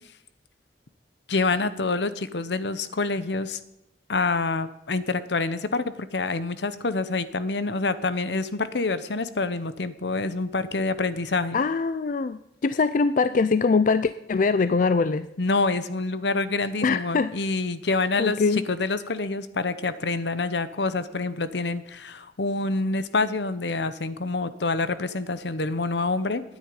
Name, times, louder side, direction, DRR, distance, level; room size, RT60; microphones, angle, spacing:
voice 1, 1.3-3.6 4.1-11.6 15.4-26.4, left 3 dB, 75° left, 13 dB, 0.9 m, -27 dB
voice 2, 11.5-15.3 16.8-17.3 18.2-18.6, left 4 dB, 45° left, 14 dB, 0.4 m, -23 dB
9.9 x 8.9 x 9.9 m, 0.85 s
head